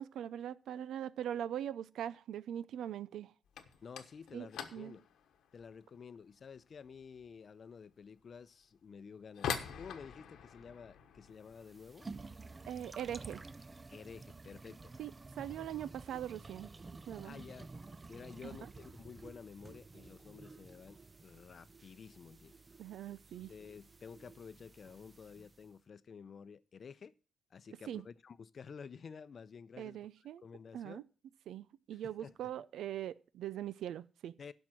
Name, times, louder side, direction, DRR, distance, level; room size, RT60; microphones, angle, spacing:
voice 1, 0.0-3.3 4.3-5.0 12.7-13.4 15.0-16.7 17.1-17.4 18.4-18.6 22.8-23.5 27.9-28.0 29.8-30.4 30.7-31.0 31.5-34.3, right 10 dB, 85° right, 0.5 m, -41 dB
sound 1, 3.4-14.2 14.5-15.1 15.3-15.7 16.0-16.1 16.8-16.9 17.8-18.0 18.3-18.8, left 8 dB, 90° left, 1.2 m, -47 dB
voice 2, 3.8-5.0 5.5-12.1 13.9-14.9 17.2-17.7 18.1-22.5 23.4-27.1 27.5-30.0 30.4-31.0 31.9-32.5 34.4-34.5, left 6 dB, 50° left, 0.6 m, -51 dB
sound 2, 11.4-25.7, right 3 dB, 30° right, 0.5 m, -52 dB
12.0 x 5.5 x 7.5 m
cardioid pair, 85°, 0 cm